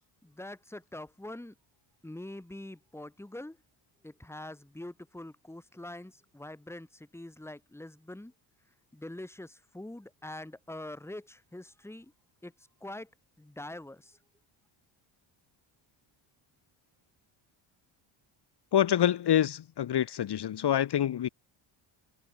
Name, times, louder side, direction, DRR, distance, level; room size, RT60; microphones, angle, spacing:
voice 1, 0.2-1.5 2.0-3.6 4.0-6.9 7.1-8.3 8.9-12.1 12.4-12.5 12.8-13.1 13.4-14.0, left 1 dB, 5° left, 2.8 m, -44 dB
voice 2, 18.7-21.3, left 10 dB, 50° left, 2.1 m, -26 dB
cardioid pair, 125°, 50 cm